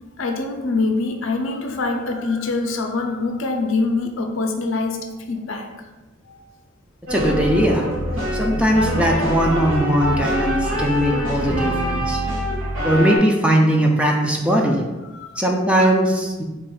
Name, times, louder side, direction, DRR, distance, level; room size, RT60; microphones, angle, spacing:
voice 1, 0.2-5.7 6.3-6.4 8.5-8.6 12.1-12.3 14.5-14.8 15.1-15.4, left 3 dB, 70° left, 3 dB, 0.5 m, -25 dB
voice 2, 7.1-7.9 8.3-12.2 12.8-14.8 15.4-16.4, equal, 5° right, 0 dB, 0.4 m, -19 dB
sound 1, 7.1-13.2, equal, 85° right, 1.2 m, -24 dB
4.2 x 2.5 x 3.7 m, 1.1 s
head